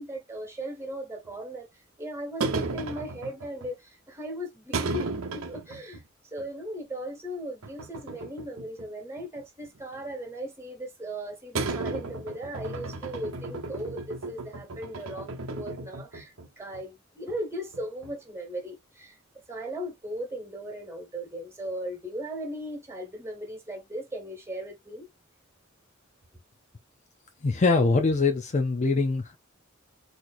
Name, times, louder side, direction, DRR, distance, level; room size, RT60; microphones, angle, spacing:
voice 1, 0.0-19.2 19.5-25.1, right 1 dB, 15° right, 1.7 m, -38 dB
sound 1, 1.3-1.4 2.4-3.7 4.7-6.0 6.4-6.5 7.6-8.9 9.2-10.1 11.6-16.5 16.7-16.8 17.3-17.4 17.7-18.3, right 3 dB, 85° right, 0.8 m, -34 dB
voice 2, 27.4-29.4, left 3 dB, 35° left, 0.5 m, -23 dB
4.3 x 3.0 x 2.5 m
head